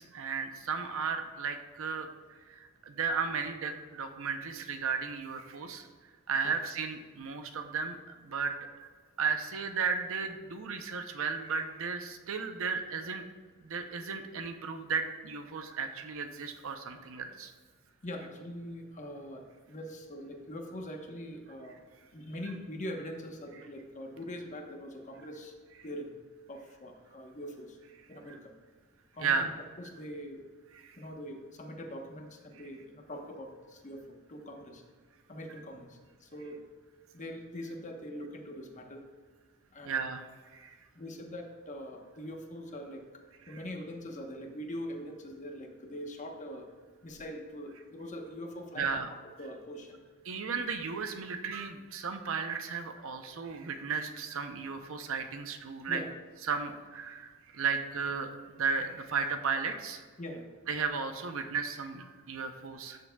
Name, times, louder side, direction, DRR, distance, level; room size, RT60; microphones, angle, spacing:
voice 1, 0.0-2.1 2.5-5.9 6.3-8.9 9.2-13.2 13.6-17.5 28.3-28.4 29.2-29.5 30.8-31.0 39.8-40.3 40.5-40.7 43.5-43.6 48.8-49.1 50.2-56.0 56.5-60.0 60.7-63.0, right 5 dB, 65° right, 7 dB, 0.7 m, -34 dB
voice 2, 18.0-21.8 22.1-25.5 25.8-26.1 26.5-27.8 28.1-28.5 29.1-29.5 29.8-30.4 31.0-34.8 35.3-36.6 37.1-39.0 39.7-40.1 40.9-43.0 43.5-46.7 47.0-49.0 49.4-50.0 55.9-56.1 56.6-56.7 60.2-60.4, equal, 35° left, 2 dB, 1.0 m, -43 dB
13.0 x 6.7 x 2.3 m, 1.5 s
head